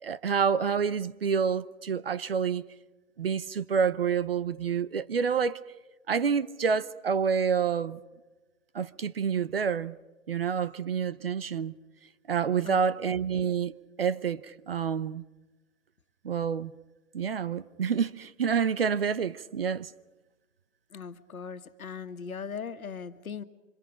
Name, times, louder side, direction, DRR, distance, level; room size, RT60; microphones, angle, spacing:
voice 1, 0.0-2.7 3.2-5.6 6.1-8.0 8.7-10.0 10.3-11.7 12.3-15.2 16.2-16.7 17.1-19.9, right 6 dB, 45° right, 0.8 m, -28 dB
voice 2, 20.9-23.4, left 6 dB, 80° left, 1.8 m, -39 dB
28.0 x 26.0 x 5.1 m
hypercardioid pair, 170°, 42 cm